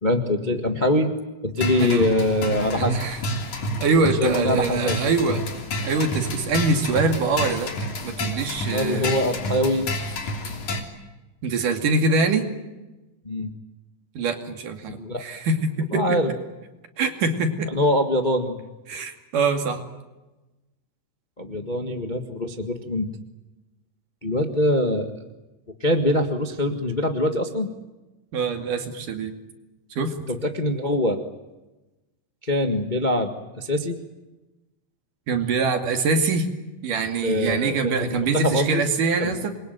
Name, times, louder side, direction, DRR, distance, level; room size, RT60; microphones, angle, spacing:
voice 1, 0.0-1.1 1.4-3.0 4.2-5.0 8.7-9.9 13.2-13.5 14.9-15.2 15.9-16.3 17.7-18.6 21.4-23.1 24.2-25.1 25.8-27.7 30.3-31.2 32.4-34.0 37.2-38.8 39.2-39.3, left 1 dB, 25° left, 5 dB, 1.0 m, -23 dB
sound 1, 1.6-10.8, equal, 60° left, 4.5 m, -29 dB
voice 2, 2.8-3.2 3.8-5.4 5.8-9.2 11.4-12.5 14.2-16.2 17.0-17.7 18.9-19.8 28.3-29.3 29.9-30.2 35.3-36.5 36.8-39.5, right 3 dB, 70° right, 6 dB, 4.0 m, -24 dB
27.5 x 23.0 x 9.3 m, 1.1 s
omnidirectional pair, 3.9 m